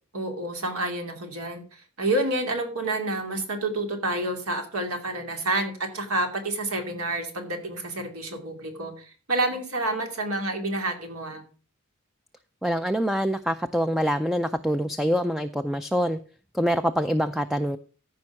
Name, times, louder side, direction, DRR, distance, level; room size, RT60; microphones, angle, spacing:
voice 1, 0.1-11.4, right 2 dB, 70° right, 5 dB, 2.6 m, -29 dB
voice 2, 12.6-16.2 16.5-17.8, equal, ahead, 10 dB, 0.4 m, -25 dB
14.0 x 5.3 x 5.9 m, 0.39 s
head